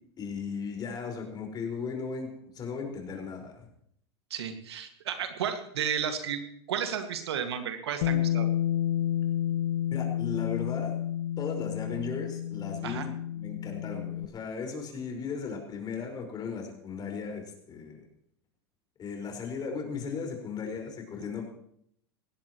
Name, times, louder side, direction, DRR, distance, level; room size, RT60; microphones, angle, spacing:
voice 1, 0.2-2.3 2.5-3.7 9.9-11.0 11.4-18.1 19.0-21.5, left 5 dB, 30° left, 2 dB, 5.2 m, -36 dB
voice 2, 4.3-6.4 6.7-8.5 12.8-13.1, right 8 dB, 80° right, 7 dB, 2.1 m, -33 dB
Bass guitar, 8.0-14.3, left 11 dB, 65° left, 0.8 m, -30 dB
19.5 x 16.5 x 3.1 m, 0.69 s
hypercardioid pair, 100°, 14 cm